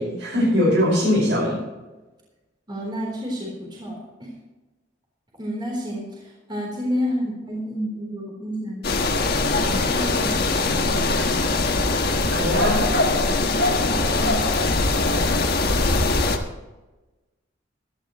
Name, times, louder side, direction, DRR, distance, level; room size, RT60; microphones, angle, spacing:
voice 1, 0.0-1.6 12.3-12.9 14.9-15.5, left 1 dB, 75° right, -3 dB, 5.2 m, -22 dB
voice 2, 2.7-4.3 5.4-8.8 9.6-11.2 13.3-14.4, equal, 25° right, -3 dB, 3.7 m, -30 dB
sound 1, 8.8-16.4, left 2 dB, 55° left, 1.4 m, -21 dB
17.0 x 12.5 x 3.1 m, 1.1 s
head